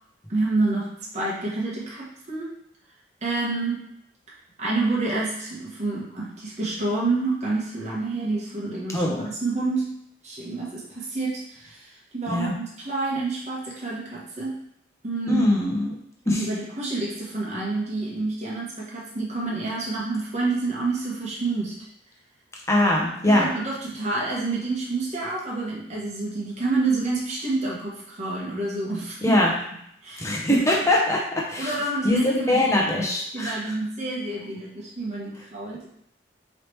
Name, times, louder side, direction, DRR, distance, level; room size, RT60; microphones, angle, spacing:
voice 1, 0.3-0.9 1.1-2.5 3.2-3.8 4.6-9.0 9.4-9.9 10.2-14.5 15.0-15.4 16.2-21.7 23.3-29.4 30.0-30.6 31.6-32.7 33.3-35.9, right 3 dB, 40° right, -5 dB, 1.2 m, -28 dB
voice 2, 8.9-9.2 12.3-12.5 15.3-16.0 16.3-16.4 22.7-23.5 29.2-29.5 30.2-31.7 32.0-33.6, left 1 dB, 15° left, -2 dB, 0.9 m, -22 dB
4.7 x 3.2 x 3.1 m, 0.73 s
head